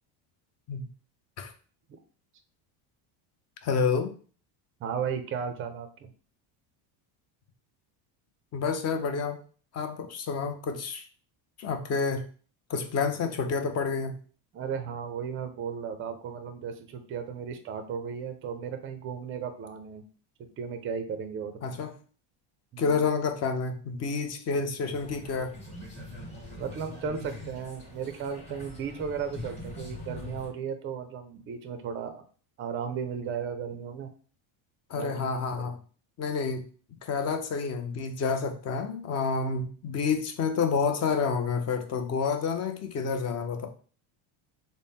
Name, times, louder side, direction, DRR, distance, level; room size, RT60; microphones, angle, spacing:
voice 1, 3.6-4.1 8.5-9.4 9.7-11.0 11.6-12.2 12.7-14.1 21.6-21.9 22.8-25.6 34.9-35.8 36.2-36.7 37.0-43.7, left 5 dB, 35° left, 7 dB, 0.4 m, -29 dB
voice 2, 4.8-6.1 14.5-20.0 20.6-21.5 22.7-23.1 26.6-32.2 32.6-34.1 34.9-35.7, right 7 dB, 30° right, 8 dB, 0.4 m, -35 dB
sound 1, 24.9-30.5, left 1 dB, 15° left, 1.1 m, -42 dB
4.0 x 2.1 x 3.5 m, 0.41 s
cardioid pair, 135°, 50 cm